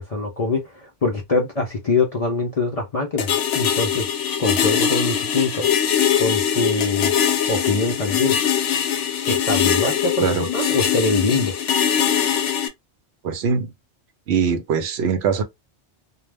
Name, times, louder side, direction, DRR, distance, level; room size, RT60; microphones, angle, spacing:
voice 1, 0.0-4.1 4.4-5.7 6.2-8.4 9.3-11.6, left 3 dB, 50° left, 0.5 m, -23 dB
sound 1, 3.2-12.7, left 8 dB, 85° left, 0.9 m, -22 dB
voice 2, 13.2-13.7 14.3-15.4, right 6 dB, 70° right, 0.8 m, -21 dB
2.4 x 2.0 x 3.2 m
omnidirectional pair, 1.2 m